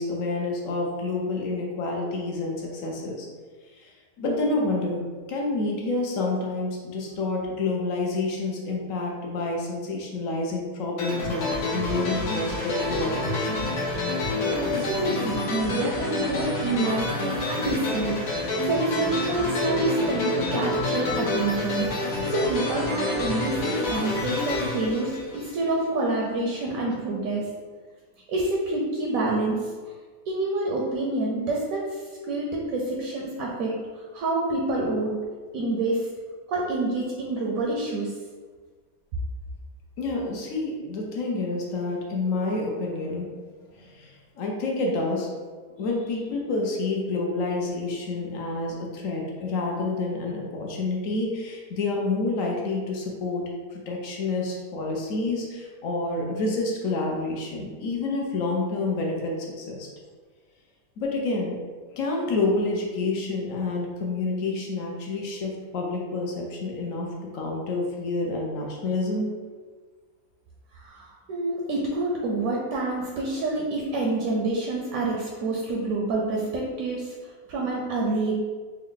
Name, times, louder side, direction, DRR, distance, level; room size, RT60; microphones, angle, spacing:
voice 1, 0.0-3.3 3.8-3.9 4.2-5.0 5.3-13.7 40.0-43.3 43.8-45.3 45.8-53.4 53.7-59.9 61.0-61.6 61.9-67.1 67.3-69.3, left 3 dB, 65° left, -1 dB, 1.0 m, -28 dB
sound 1, 11.0-25.8, left 2 dB, 85° left, 1.2 m, -28 dB
voice 2, 14.5-21.9 22.3-27.5 28.3-29.7 30.3-35.2 35.5-36.1 36.5-38.1 70.7-78.3, right 2 dB, 70° right, -3 dB, 1.0 m, -27 dB
3.6 x 2.2 x 3.6 m, 1.5 s
omnidirectional pair, 1.6 m